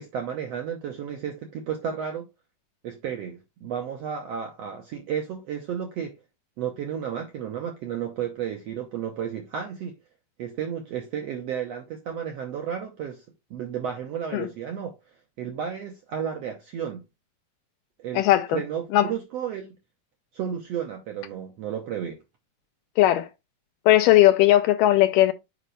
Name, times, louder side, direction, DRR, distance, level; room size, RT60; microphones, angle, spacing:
voice 1, 0.0-2.2 2.8-6.1 6.6-9.9 10.4-13.2 13.5-15.0 15.4-17.0 18.0-19.7 20.3-22.2, right 8 dB, 70° right, 1.5 m, -32 dB
voice 2, 18.1-18.6 18.9-19.1 23.0-23.3 23.9-25.3, left 14 dB, 80° left, 2.1 m, -18 dB
7.5 x 5.1 x 3.2 m
omnidirectional pair, 4.1 m